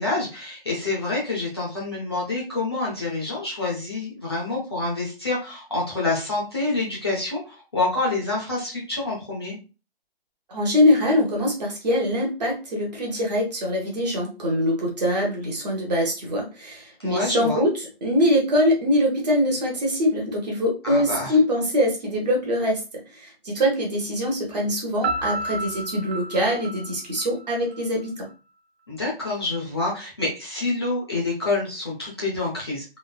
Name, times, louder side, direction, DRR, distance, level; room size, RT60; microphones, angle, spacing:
voice 1, 0.0-9.6 17.0-17.6 20.8-21.4 28.9-32.8, left 2 dB, 25° left, -5 dB, 0.5 m, -27 dB
voice 2, 10.5-17.7 18.0-22.8 23.1-28.3, left 1 dB, 40° right, -1 dB, 0.9 m, -23 dB
Piano, 25.0-27.8, right 2 dB, 80° right, 0.8 m, -31 dB
3.1 x 2.0 x 2.2 m, 0.32 s
hypercardioid pair, 165°, 31 cm